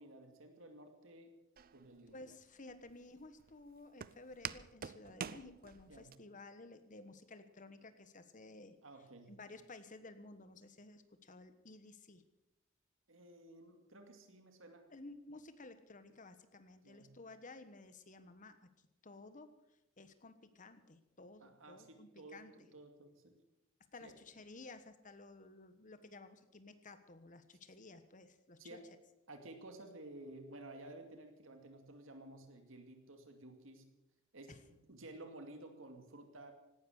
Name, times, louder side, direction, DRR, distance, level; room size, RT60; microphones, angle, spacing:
voice 1, 0.0-1.3 1.7-2.2 5.9-6.1 8.8-9.3 13.1-14.9 16.8-17.2 21.4-23.4 24.0-24.1 28.6-28.9 29.3-33.9 34.3-36.5, right 2 dB, 70° right, 5 dB, 2.3 m, -54 dB
Walk footsteps, 1.6-6.2, right 8 dB, 45° right, 0.5 m, -48 dB
voice 2, 2.1-8.8 9.3-12.2 14.9-18.7 19.0-19.5 20.0-22.5 23.9-28.8 34.5-34.6, left 2 dB, 40° left, 11 dB, 1.3 m, -54 dB
17.0 x 12.5 x 6.5 m, 0.94 s
head